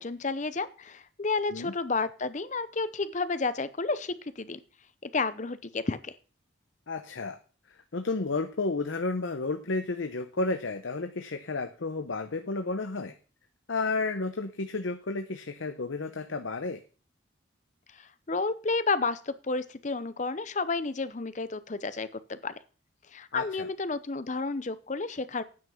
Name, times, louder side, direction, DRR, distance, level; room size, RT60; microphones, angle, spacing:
voice 1, 0.0-4.6 5.0-6.1 17.9-22.5 23.1-25.4, left 3 dB, 40° left, 14 dB, 0.6 m, -31 dB
voice 2, 6.9-7.4 7.7-13.1 13.7-16.8 23.3-23.7, left 3 dB, 75° left, 8 dB, 0.8 m, -32 dB
9.5 x 5.9 x 7.0 m, 0.37 s
head